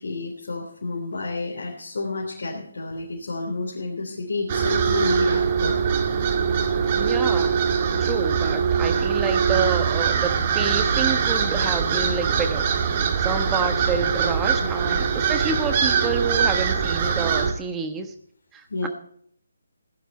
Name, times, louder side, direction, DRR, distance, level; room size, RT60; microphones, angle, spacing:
voice 1, 0.0-5.8 14.8-15.0 15.5-15.6 18.7-18.9, left 3 dB, 65° left, -1 dB, 3.3 m, -30 dB
sound 1, 4.5-17.5, right 6 dB, 35° right, 1.8 m, -22 dB
voice 2, 7.0-7.5 8.0-12.7 13.2-18.1 18.5-18.9, right 5 dB, 10° right, 7 dB, 1.2 m, -28 dB
16.0 x 12.0 x 4.4 m, 0.64 s
figure-of-eight pair, 155°, 0 cm